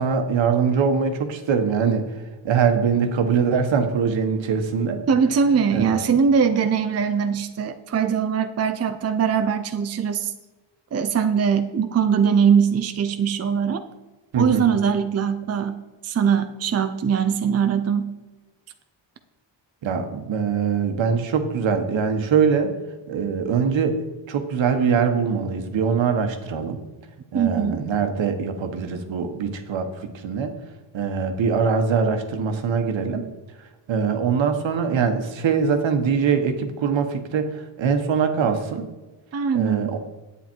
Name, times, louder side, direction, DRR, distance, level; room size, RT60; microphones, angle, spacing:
voice 1, 0.0-2.1 2.4-5.0 5.7-6.0 14.3-14.7 19.8-22.8 23.1-24.0 24.3-26.8 27.3-30.5 30.9-33.3 33.9-38.9 39.5-40.0, right 6 dB, 75° right, 6 dB, 1.4 m, -22 dB
voice 2, 5.1-10.3 10.9-13.8 14.4-15.8 16.0-18.1 27.3-27.8 39.3-39.9, right 7 dB, 35° right, 8 dB, 0.6 m, -21 dB
10.5 x 9.0 x 4.5 m, 1.2 s
wide cardioid pair, 165°, 46 cm